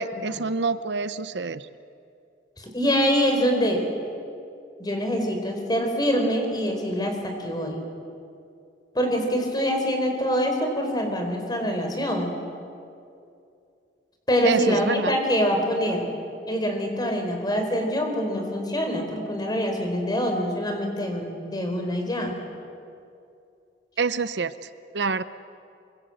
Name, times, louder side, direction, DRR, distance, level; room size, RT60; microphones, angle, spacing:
voice 1, 0.0-1.7 14.4-15.2 24.0-24.5 24.9-25.2, right 4 dB, 80° right, 13 dB, 0.8 m, -26 dB
voice 2, 2.6-3.8 4.8-7.8 8.9-12.4 14.3-16.1 16.5-22.4, equal, 25° left, 3 dB, 4.5 m, -25 dB
25.5 x 25.0 x 7.9 m, 2.5 s
head